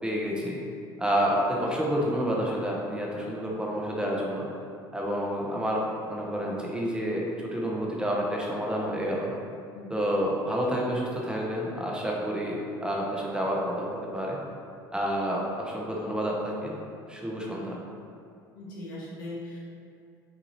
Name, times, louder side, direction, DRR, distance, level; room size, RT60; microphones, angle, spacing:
voice 1, 0.0-0.6 1.0-4.5 4.9-9.3 9.9-14.4 14.9-16.7 17.1-17.8, equal, 10° right, -3 dB, 0.8 m, -29 dB
voice 2, 18.5-19.6, left 1 dB, 85° left, -5 dB, 1.0 m, -39 dB
5.2 x 2.7 x 3.2 m, 2.5 s
hypercardioid pair, 75°, 11 cm